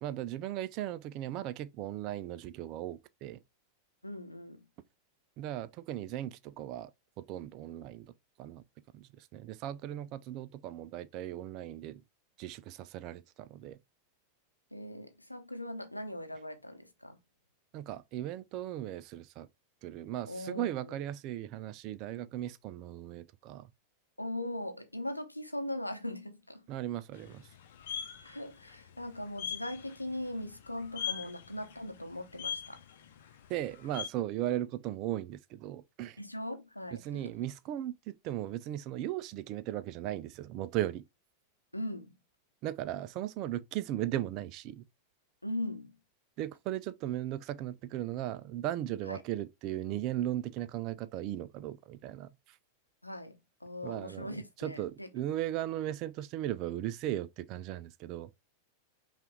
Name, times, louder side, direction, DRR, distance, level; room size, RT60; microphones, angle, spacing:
voice 1, 0.0-3.4 5.4-6.9 7.2-8.1 8.4-8.6 8.9-12.0 12.4-13.8 17.7-19.5 19.8-23.7 26.7-27.5 33.5-36.2 37.0-41.0 42.6-44.8 46.4-52.3 53.8-58.5, right 13 dB, 40° right, 0.4 m, -37 dB
voice 2, 4.0-4.7 14.7-17.2 20.3-21.0 24.2-26.7 28.2-32.8 36.2-37.4 41.7-42.2 45.4-46.0 49.0-49.2 53.0-55.1, left 1 dB, 85° left, 0.7 m, -40 dB
sound 1, 27.1-34.1, left 9 dB, 55° left, 0.7 m, -42 dB
5.6 x 2.5 x 3.5 m
figure-of-eight pair, 90°, 0 cm